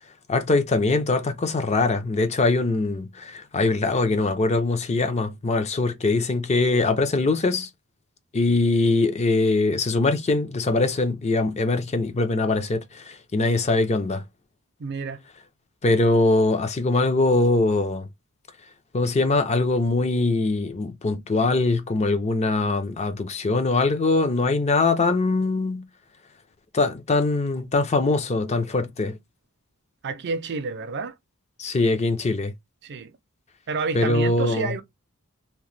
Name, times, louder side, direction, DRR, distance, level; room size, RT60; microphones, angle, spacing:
voice 1, 0.3-7.7 8.3-14.2 15.8-18.1 18.9-25.9 26.7-29.2 31.6-32.5 33.9-34.7, left 3 dB, 30° left, 0.5 m, -22 dB
voice 2, 14.8-15.2 30.0-31.1 32.8-33.1 33.7-34.8, right 4 dB, 50° right, 0.5 m, -29 dB
2.9 x 2.1 x 3.1 m
head